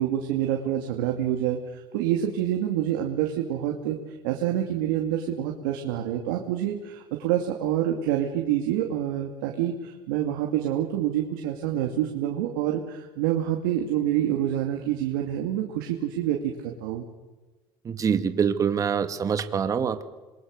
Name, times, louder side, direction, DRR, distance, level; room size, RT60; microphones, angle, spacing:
voice 1, 0.0-4.0 4.2-17.1, right 11 dB, 85° right, 2 dB, 2.6 m, -27 dB
voice 2, 17.8-20.0, right 7 dB, 30° right, 9 dB, 1.8 m, -25 dB
27.0 x 22.0 x 6.7 m, 1.2 s
supercardioid pair, 115°, 11 cm